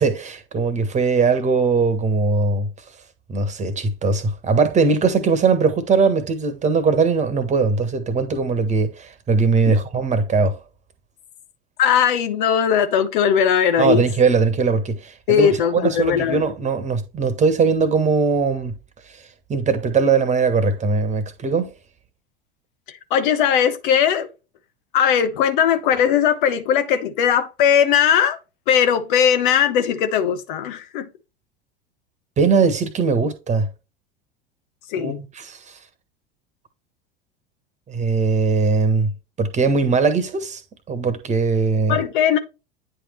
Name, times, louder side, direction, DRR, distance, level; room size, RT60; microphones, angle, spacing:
voice 1, 0.0-2.7 3.3-10.6 13.8-18.7 19.1-19.2 19.5-21.7 32.4-33.7 35.0-35.8 37.9-39.1 39.4-40.6 40.9-42.0, right 4 dB, 25° right, 1.4 m, -20 dB
voice 2, 11.8-14.0 15.3-16.4 22.9-24.3 24.9-28.4 28.7-31.1 34.9-35.2 41.9-42.4, left 8 dB, 60° left, 0.9 m, -19 dB
9.7 x 3.6 x 3.2 m
figure-of-eight pair, 80°, 29 cm